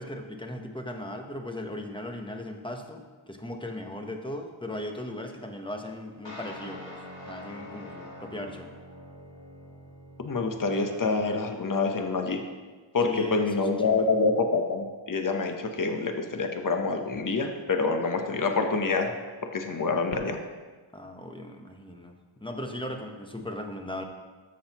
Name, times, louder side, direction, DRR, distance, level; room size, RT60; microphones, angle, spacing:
voice 1, 0.0-8.7 13.0-14.1 20.9-24.0, left 1 dB, 10° left, 3 dB, 0.9 m, -38 dB
sound 1, 6.2-11.4, left 1 dB, 60° left, 1.9 m, -45 dB
voice 2, 10.2-12.4 12.9-19.1 19.4-20.4, left 3 dB, 40° left, 5 dB, 0.9 m, -27 dB
13.5 x 6.4 x 2.9 m, 1.4 s
wide cardioid pair, 70°, 49 cm